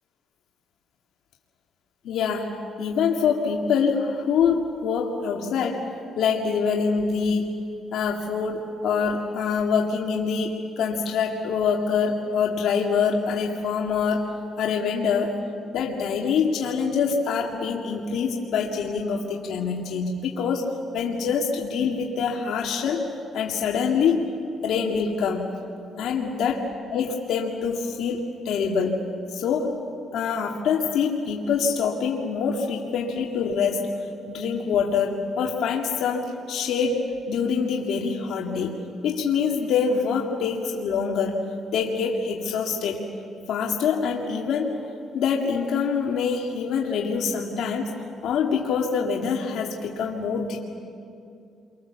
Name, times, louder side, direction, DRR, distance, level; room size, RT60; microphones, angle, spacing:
voice 1, 2.0-5.9 6.2-7.6 7.9-15.4 15.7-23.1 23.3-24.2 24.6-25.5 26.0-26.7 26.9-29.0 29.3-29.8 30.1-33.9 34.3-41.5 41.7-43.0 43.5-44.8 45.1-47.9 48.2-50.6, left 6 dB, 80° left, 0 dB, 2.0 m, -25 dB
28.0 x 24.5 x 7.3 m, 2.6 s
cardioid pair, 90°, 0 cm